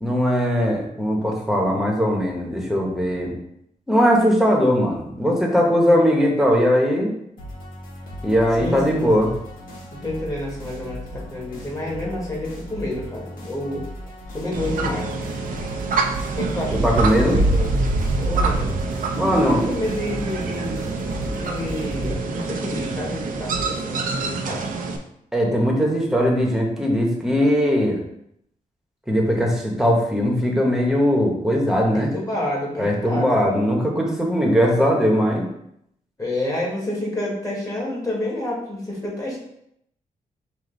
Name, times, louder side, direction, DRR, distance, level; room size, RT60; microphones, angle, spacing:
voice 1, 0.0-3.3 3.9-7.1 8.2-9.3 16.7-17.4 19.2-19.7 22.0-22.1 25.3-28.0 29.1-32.1 32.8-35.4, equal, 5° right, -1 dB, 1.1 m, -20 dB
sound 1, 7.4-22.2, equal, 90° left, 1.4 m, -37 dB
voice 2, 8.6-9.1 10.0-13.8 14.3-15.3 16.3-17.7 18.2-18.7 19.5-20.8 21.2-24.7 31.9-33.4 36.2-39.4, left 1 dB, 25° left, -3 dB, 1.6 m, -29 dB
sound 2, 14.5-25.0, right 3 dB, 75° right, 0.6 m, -25 dB
5.1 x 2.7 x 3.9 m, 0.75 s
wide cardioid pair, 115°, 14 cm